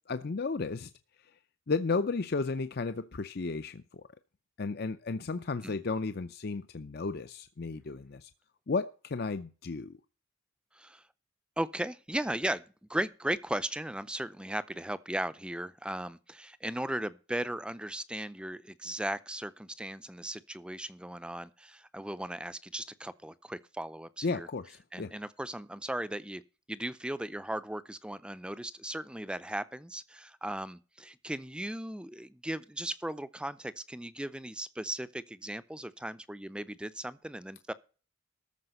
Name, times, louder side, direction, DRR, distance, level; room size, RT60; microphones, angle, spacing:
voice 1, 0.1-0.9 1.7-4.0 4.6-8.3 8.7-10.0 24.2-25.1, left 4 dB, 50° left, 0.6 m, -33 dB
voice 2, 11.6-24.5 24.9-26.4 26.7-37.7, right 1 dB, 5° right, 0.5 m, -37 dB
13.5 x 5.0 x 7.7 m
head